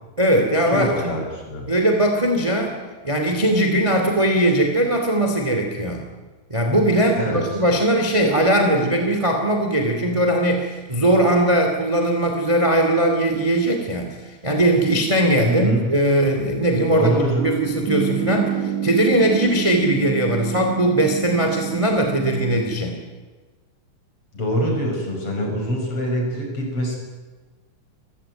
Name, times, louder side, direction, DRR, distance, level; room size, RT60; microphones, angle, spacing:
voice 1, 0.2-1.1 1.7-2.8 3.0-6.0 6.5-17.1 17.4-23.0, right 1 dB, 10° right, 3 dB, 2.2 m, -20 dB
voice 2, 0.7-1.6 7.2-7.4 15.5-15.9 16.9-17.5 24.3-27.0, equal, 40° left, 1 dB, 6.6 m, -23 dB
sound 1, 17.4-22.6, right 9 dB, 65° right, 3.7 m, -27 dB
27.5 x 15.0 x 9.1 m, 1.3 s
omnidirectional pair, 4.0 m